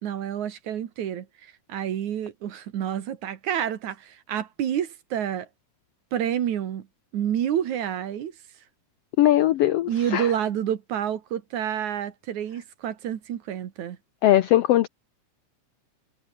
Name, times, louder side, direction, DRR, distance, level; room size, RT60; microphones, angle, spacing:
voice 1, 0.0-5.5 6.1-6.9 7.1-8.3 9.9-14.0, right 10 dB, 65° right, 2.9 m, -29 dB
voice 2, 9.2-10.3 14.2-14.9, left 13 dB, 85° left, 1.3 m, -20 dB
omnidirectional pair, 3.7 m